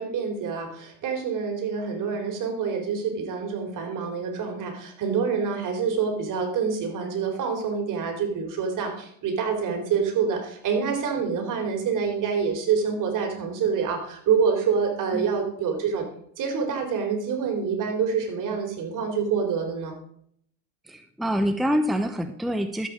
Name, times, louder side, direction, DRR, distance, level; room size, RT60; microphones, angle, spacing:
voice 1, 0.0-16.1 16.4-19.9, right 6 dB, 50° right, 3 dB, 4.1 m, -26 dB
voice 2, 20.9-22.9, equal, ahead, 7 dB, 0.8 m, -26 dB
13.0 x 8.4 x 5.1 m, 0.67 s
supercardioid pair, 105°, 39 cm